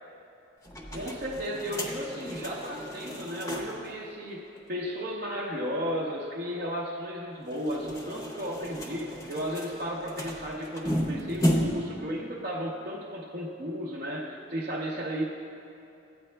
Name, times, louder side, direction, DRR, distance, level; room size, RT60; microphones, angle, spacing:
sound 1, 0.6-3.9 4.2-4.3 4.6-4.7 7.4-12.0, equal, 15° left, 0.7 m, -33 dB
voice 1, 0.9-15.2, equal, 45° right, -3 dB, 0.7 m, -34 dB
13.5 x 9.1 x 2.2 m, 2.7 s
head